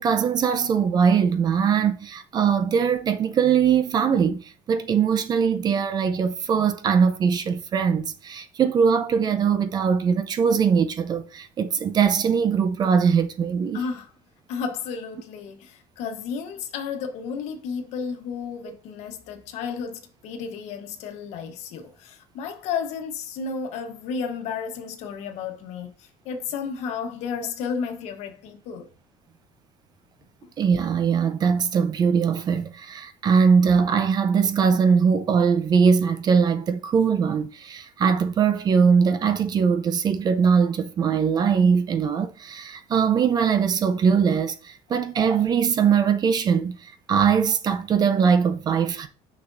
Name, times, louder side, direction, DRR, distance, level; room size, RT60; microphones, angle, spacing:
voice 1, 0.0-13.8 30.6-49.1, right 6 dB, 35° right, 0.6 m, -21 dB
voice 2, 13.7-14.1 14.5-28.9, left 6 dB, 70° left, 1.2 m, -32 dB
6.1 x 6.0 x 2.6 m
cardioid pair, 140°, 12 cm